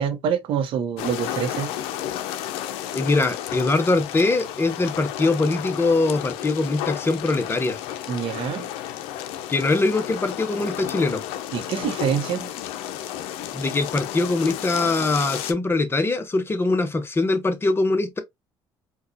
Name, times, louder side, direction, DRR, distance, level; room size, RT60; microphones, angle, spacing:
voice 1, 0.0-1.7 8.1-8.7 11.5-12.5, right 8 dB, 70° right, 0.8 m, -26 dB
sound 1, 1.0-15.5, left 11 dB, 85° left, 0.5 m, -32 dB
voice 2, 2.9-7.8 9.5-11.2 13.5-18.2, left 3 dB, 25° left, 0.8 m, -22 dB
4.5 x 2.3 x 2.7 m
supercardioid pair, 85°, 9 cm